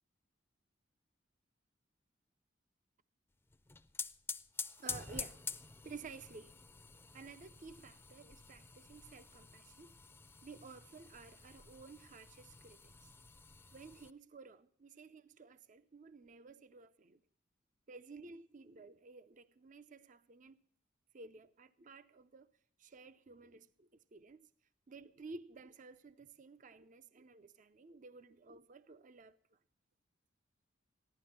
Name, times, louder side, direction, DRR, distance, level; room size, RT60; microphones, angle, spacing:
sound 1, 3.5-14.1, left 4 dB, 15° left, 0.5 m, -48 dB
voice 1, 4.8-5.4 5.8-6.6 7.1-9.9 10.4-13.1 13.7-17.2 17.9-20.6 21.1-22.5 22.8-24.5 24.9-29.6, right 4 dB, 45° right, 0.5 m, -54 dB
15.0 x 11.5 x 5.8 m
head